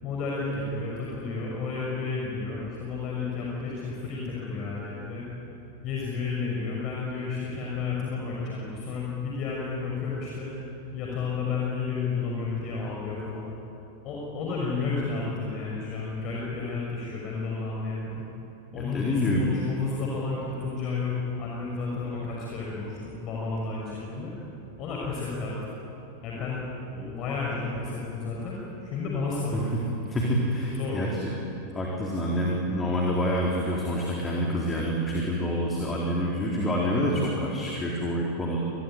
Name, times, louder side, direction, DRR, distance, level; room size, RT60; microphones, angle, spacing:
voice 1, 0.0-5.2 5.8-10.5 10.9-13.5 14.0-18.2 18.7-24.3 24.8-25.5 26.2-26.6 26.9-29.7 30.6-31.1, left 4 dB, 35° left, -4 dB, 6.1 m, -31 dB
voice 2, 18.7-19.5 29.5-29.8 30.1-31.3 31.7-38.6, equal, 15° left, -3 dB, 4.2 m, -27 dB
27.5 x 21.0 x 9.3 m, 3.0 s
figure-of-eight pair, 90°, 0 cm